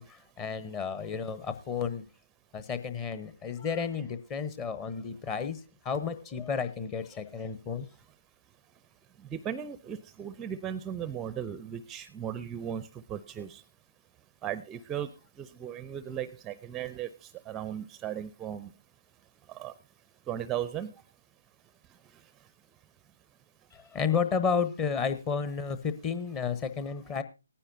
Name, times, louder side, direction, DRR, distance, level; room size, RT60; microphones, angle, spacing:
voice 1, 0.0-2.0 2.5-5.6 5.8-7.9 23.7-27.2, left 6 dB, 20° left, 11 dB, 1.0 m, -32 dB
voice 2, 9.2-13.6 14.4-18.7 19.5-19.8 20.3-21.0 21.9-22.5, right 9 dB, 15° right, 15 dB, 0.6 m, -37 dB
18.5 x 9.9 x 2.7 m, 0.28 s
figure-of-eight pair, 145°, 0 cm